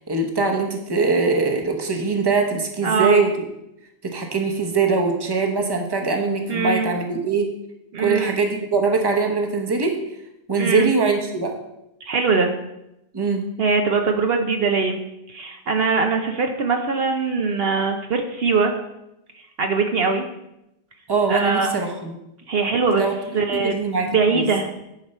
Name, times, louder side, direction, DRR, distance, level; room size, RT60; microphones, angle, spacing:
voice 1, 0.1-3.5 4.0-7.5 8.0-10.0 10.5-11.5 13.1-13.4 21.1-22.1 22.9-23.1 23.6-24.4, right 4 dB, 25° right, 3 dB, 1.0 m, -22 dB
voice 2, 2.8-3.2 6.5-6.9 7.9-8.3 10.5-10.9 12.0-12.5 13.6-15.0 15.3-18.7 19.6-20.3 21.3-21.7 22.5-23.0 23.3-24.7, right 4 dB, 65° right, 4 dB, 0.9 m, -21 dB
10.5 x 4.6 x 5.4 m, 0.88 s
omnidirectional pair, 1.1 m